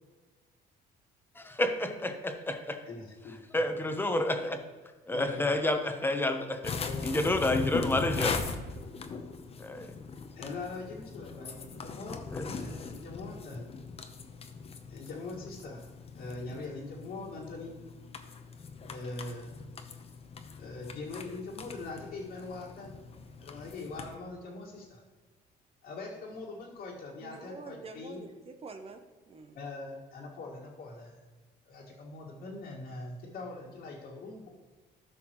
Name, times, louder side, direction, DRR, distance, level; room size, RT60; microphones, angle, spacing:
voice 1, 1.4-2.8 3.5-4.6 5.1-6.7 7.0-8.4 9.6-9.9 12.3-12.5, left 1 dB, 10° left, 6 dB, 1.0 m, -29 dB
voice 2, 2.9-3.7 5.1-5.5 6.8-7.3 10.4-13.7 14.9-15.9 16.1-17.8 18.9-19.5 20.6-23.0 23.4-25.0 25.8-28.3 29.5-31.3 31.7-34.5, left 3 dB, 65° left, -6 dB, 1.9 m, -42 dB
sound 1, 6.6-24.2, left 5 dB, 35° left, 0.8 m, -40 dB
voice 3, 27.2-29.6, right 4 dB, 35° right, 6 dB, 0.7 m, -47 dB
13.5 x 5.8 x 3.1 m, 1.4 s
cardioid pair, 110°, 17 cm